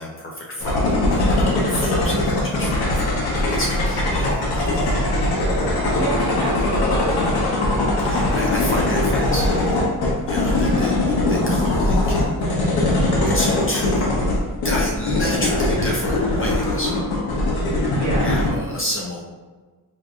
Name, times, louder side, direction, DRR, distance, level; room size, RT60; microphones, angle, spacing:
voice 1, 0.0-5.1 8.0-9.8 10.2-12.6 13.2-14.0 14.6-17.0 18.2-19.2, left 1 dB, 35° left, -2 dB, 0.4 m, -30 dB
sound 1, 0.6-18.5, left 2 dB, 75° left, 0.8 m, -21 dB
sound 2, 3.7-4.3 5.0-6.2 6.5-6.9 7.4-7.5 9.1-9.7 10.0-10.1 10.3-10.4 11.1-11.3 11.6-12.8 16.8-17.4, left 1 dB, 55° left, 1.0 m, -41 dB
voice 2, 5.9-7.1 8.3-8.5 17.7-18.3, right 2 dB, 50° right, -6 dB, 1.1 m, -29 dB
4.6 x 2.5 x 2.3 m, 1.3 s
wide cardioid pair, 170°, 37 cm